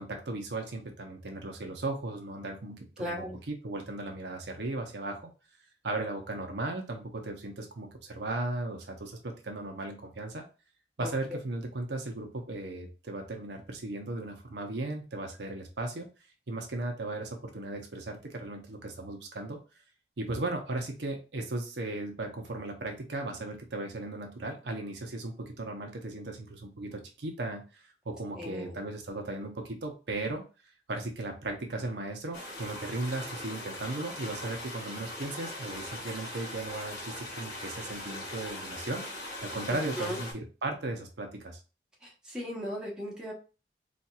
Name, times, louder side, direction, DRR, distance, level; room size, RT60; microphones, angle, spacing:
voice 1, 0.0-5.3 5.8-10.5 11.0-16.1 16.5-19.6 20.2-30.4 30.9-39.1 39.4-41.6, right 2 dB, 85° right, 3 dB, 0.8 m, -36 dB
voice 2, 3.0-3.4 11.0-11.1 28.3-28.8 39.7-40.2 42.0-43.3, equal, 5° right, -4 dB, 1.0 m, -37 dB
sound 1, 32.3-40.3, left 1 dB, 65° left, 1.4 m, -40 dB
4.1 x 2.5 x 2.4 m, 0.32 s
head